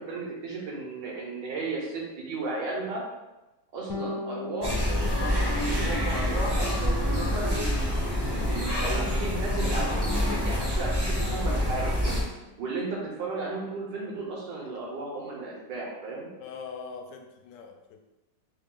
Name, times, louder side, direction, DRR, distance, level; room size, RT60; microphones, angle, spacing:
voice 1, 0.0-3.0 3.7-4.8 5.3-12.2 12.6-16.3, right 3 dB, 80° right, -3 dB, 1.6 m, -35 dB
Bass guitar, 3.9-13.5, left 3 dB, 55° left, 0.5 m, -43 dB
sound 1, 4.6-12.2, left 1 dB, 35° right, 0.4 m, -27 dB
voice 2, 16.4-18.0, left 5 dB, 90° left, 4 dB, 1.2 m, -42 dB
3.6 x 2.4 x 3.6 m, 1.0 s
omnidirectional pair, 1.9 m